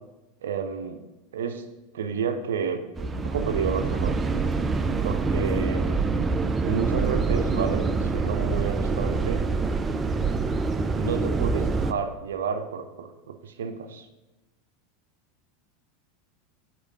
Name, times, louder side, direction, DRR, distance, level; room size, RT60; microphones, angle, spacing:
voice 1, 0.4-1.0 1.3-1.6 1.9-2.8 3.1-4.2 5.0-6.1 6.5-9.4 11.0-14.1, right 6 dB, 75° right, 7 dB, 0.5 m, -30 dB
sound 1, 3.0-11.9, right 4 dB, 20° right, 0.4 m, -25 dB
8.0 x 3.0 x 5.3 m, 1.0 s
hypercardioid pair, 85°, 0 cm